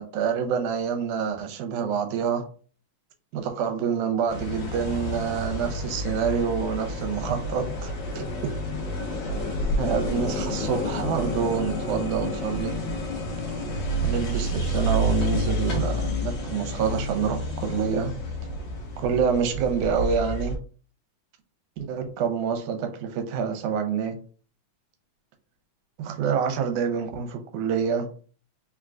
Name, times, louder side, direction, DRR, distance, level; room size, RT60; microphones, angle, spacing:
voice 1, 0.0-2.4 3.3-8.5 9.8-12.8 14.0-18.1 19.0-20.6 21.9-24.2 26.0-28.1, right 7 dB, 85° right, 5 dB, 2.2 m, -27 dB
sound 1, 4.3-20.6, left 1 dB, 55° left, 1.4 m, -29 dB
4.5 x 3.6 x 2.4 m, 0.40 s
omnidirectional pair, 3.5 m